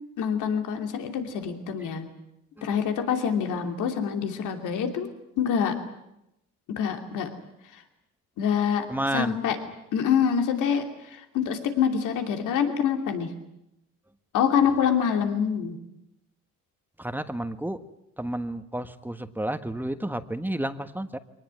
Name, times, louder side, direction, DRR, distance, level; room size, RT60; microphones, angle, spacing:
voice 1, 0.2-2.1 2.6-5.1 5.4-5.7 6.8-7.3 8.4-8.9 9.1-9.6 9.9-10.8 11.1-13.3 14.3-15.8, left 7 dB, 90° left, 5 dB, 2.9 m, -25 dB
voice 2, 8.9-9.4 17.0-17.8 18.2-21.2, right 1 dB, 5° right, 9 dB, 1.4 m, -31 dB
23.5 x 19.0 x 9.6 m, 0.86 s
cardioid pair, 90°, 30 cm